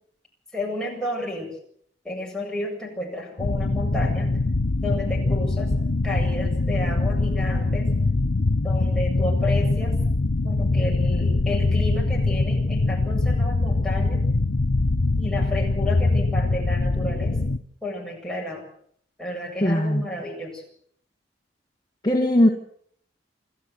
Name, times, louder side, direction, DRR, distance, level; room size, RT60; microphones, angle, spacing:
voice 1, 0.5-1.5 2.0-4.4 4.8-5.7 6.0-7.9 8.6-9.9 10.4-14.2 15.2-17.3 17.8-18.6 19.2-20.5, left 1 dB, 5° left, -2 dB, 7.6 m, -31 dB
sound 1, 3.4-17.6, left 2 dB, 85° left, 0.9 m, -23 dB
voice 2, 19.6-20.1 22.0-22.5, left 1 dB, 25° left, 3 dB, 1.7 m, -19 dB
29.0 x 13.0 x 8.0 m, 0.63 s
head